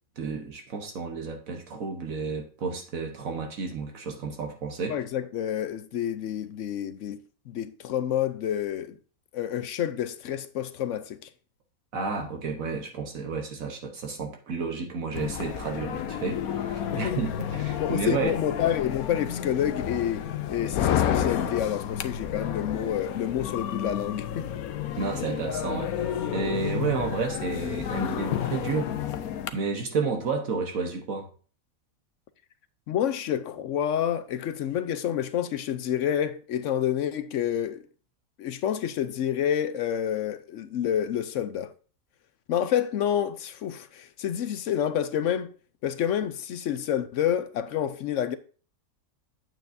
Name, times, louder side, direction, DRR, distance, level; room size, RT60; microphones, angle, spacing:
voice 1, 0.2-5.0 11.9-18.4 25.0-28.9 29.5-31.3, right 4 dB, 70° right, 1.4 m, -31 dB
voice 2, 4.9-9.0 9.3-11.2 16.9-17.2 17.8-24.5 32.9-37.8 38.4-41.7 42.5-45.5 45.8-48.4, left 10 dB, 70° left, 0.8 m, -28 dB
sound 1, 15.2-29.5, left 9 dB, 85° left, 1.1 m, -31 dB
9.2 x 7.6 x 2.6 m
omnidirectional pair, 1.5 m